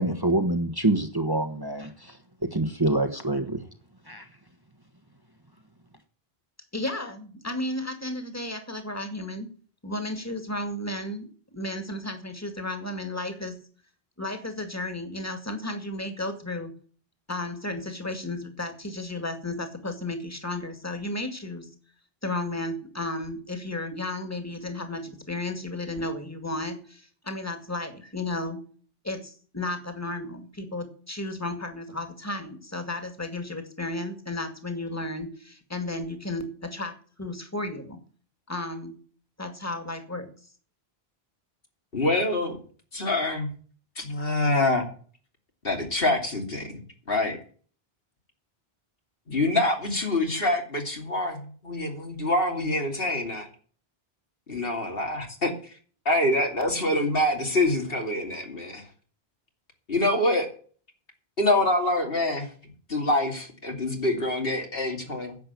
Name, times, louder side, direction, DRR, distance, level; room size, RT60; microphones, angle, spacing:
voice 1, 0.0-2.2 2.4-3.6 4.1-4.2, right 2 dB, 20° right, 6 dB, 1.4 m, -26 dB
voice 2, 6.7-9.5 9.8-11.3 11.5-13.6 14.2-16.7 17.3-21.7 22.2-28.6 29.0-38.0 38.5-39.0 39.4-40.3, left 2 dB, 15° left, 7 dB, 2.2 m, -33 dB
voice 3, 41.9-42.6 42.9-43.5 44.0-44.8 45.6-46.7 47.1-47.4 49.3-53.5 54.5-55.5 56.0-58.8 59.9-60.5 61.4-62.5 62.9-65.4, left 1 dB, 65° left, 3 dB, 3.0 m, -25 dB
10.5 x 7.8 x 8.3 m, 0.43 s
omnidirectional pair, 1.0 m